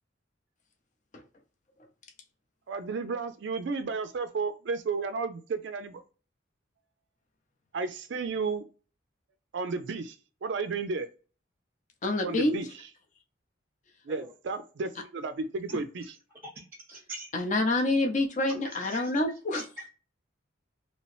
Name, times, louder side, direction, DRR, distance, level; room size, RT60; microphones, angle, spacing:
voice 1, 2.7-6.0 7.7-8.7 9.5-10.2 10.4-11.1 12.2-12.7 14.1-16.0, right 4 dB, 60° right, 0.4 m, -32 dB
voice 2, 12.0-12.5 17.3-19.6, left 2 dB, 40° left, 0.6 m, -27 dB
voice 3, 16.4-17.3 18.8-19.1 19.5-19.9, right 2 dB, 10° right, 0.7 m, -43 dB
3.0 x 2.8 x 3.0 m
head